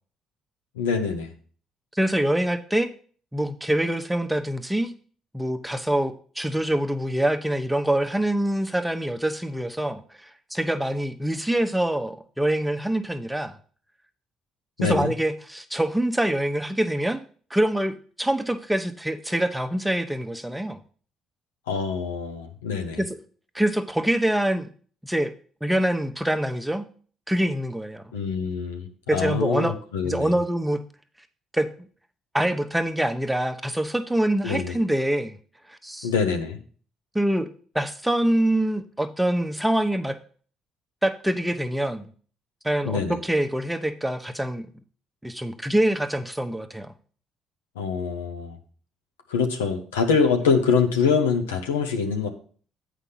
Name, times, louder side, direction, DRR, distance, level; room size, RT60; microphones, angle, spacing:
voice 1, 0.8-1.3 14.8-15.1 21.7-23.0 28.1-30.3 34.4-34.7 36.0-36.6 42.9-43.2 47.8-48.6 49.3-52.3, left 5 dB, 85° left, 4 dB, 1.0 m, -24 dB
voice 2, 1.9-2.9 3.3-4.9 5.3-13.6 14.8-17.2 17.5-20.8 23.0-23.2 23.5-24.7 25.0-25.3 25.6-26.9 27.3-28.0 29.1-29.8 30.0-30.8 31.5-31.9 32.3-35.4 35.7-36.1 37.1-40.2 41.0-42.1 42.6-44.7 45.2-46.9, right 1 dB, 5° right, 7 dB, 1.0 m, -25 dB
8.0 x 5.0 x 5.6 m, 0.44 s
hypercardioid pair, 50°, 0 cm